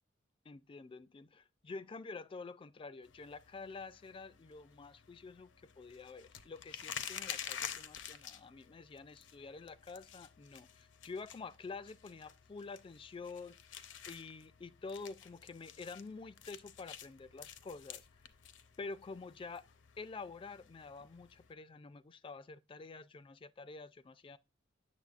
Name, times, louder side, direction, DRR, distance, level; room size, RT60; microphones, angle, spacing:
voice 1, 0.5-5.5 5.8-13.6 14.1-18.0 18.8-19.6 20.0-24.4, left 4 dB, 25° left, 0.3 m, -48 dB
sound 1, 3.0-21.5, left 8 dB, 70° left, 0.6 m, -50 dB
8.1 x 6.9 x 2.4 m
head